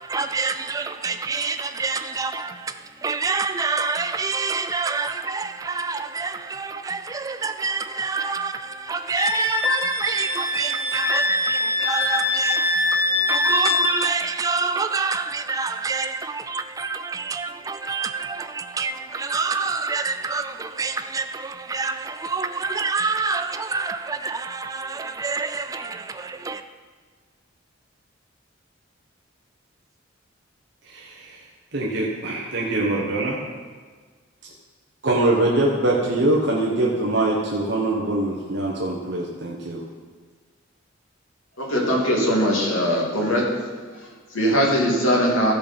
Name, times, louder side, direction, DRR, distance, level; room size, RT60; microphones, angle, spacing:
voice 1, 0.0-26.6, right 4 dB, 15° right, 0.3 m, -27 dB
Wind instrument woodwind instrument, 9.2-14.0, left 2 dB, 50° left, 2.4 m, -23 dB
voice 2, 30.9-31.4 31.7-33.4 35.0-39.8, right 2 dB, 60° right, 1.2 m, -23 dB
voice 3, 41.6-43.5 43.9-45.5, equal, 90° left, 2.7 m, -21 dB
14.5 x 5.4 x 5.3 m
head